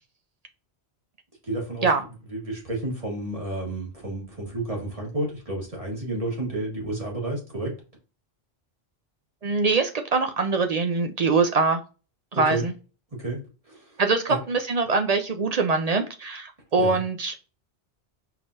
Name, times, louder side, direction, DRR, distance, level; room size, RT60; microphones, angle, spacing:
voice 1, 1.5-1.9 2.3-7.7 12.5-12.7 13.2-13.4 13.7-13.8 14.3-14.4 16.8-17.0, right 2 dB, 35° right, -1 dB, 1.6 m, -30 dB
voice 2, 9.4-11.8 12.3-12.7 14.0-17.3, right 4 dB, 50° right, 6 dB, 0.5 m, -23 dB
4.6 x 3.6 x 2.6 m, 0.34 s
omnidirectional pair, 1.1 m